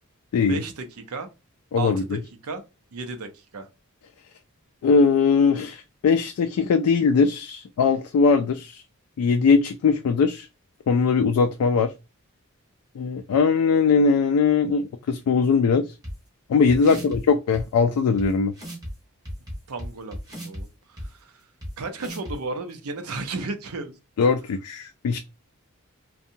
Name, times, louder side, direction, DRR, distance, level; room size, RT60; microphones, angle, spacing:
voice 1, 0.4-1.3 1.8-2.6 2.9-3.7 16.8-17.1 19.7-21.3 21.8-23.9, right 3 dB, 85° right, 0.6 m, -34 dB
voice 2, 1.7-2.2 4.8-8.8 9.2-10.5 10.9-11.9 13.0-15.9 16.5-18.5 24.2-25.2, left 5 dB, 85° left, 0.3 m, -20 dB
sound 1, 16.0-16.1 16.7-17.2 17.5-17.6 18.2-18.3 18.5-18.9 19.2-20.6 21.0-21.1 21.6-21.7 22.0-22.3, equal, 15° right, 0.8 m, -35 dB
2.7 x 2.2 x 2.6 m
head